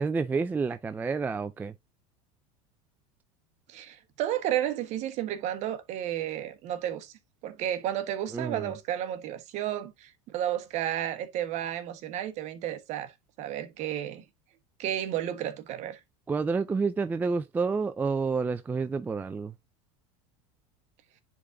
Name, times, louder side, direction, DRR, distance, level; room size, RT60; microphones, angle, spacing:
voice 1, 0.0-1.7 8.3-8.7 16.3-19.5, right 4 dB, 10° right, 0.3 m, -29 dB
voice 2, 3.7-7.1 7.4-13.1 13.4-14.2 14.8-16.0, right 11 dB, 50° right, 1.3 m, -32 dB
9.9 x 3.7 x 2.6 m
supercardioid pair, 125°, 15 cm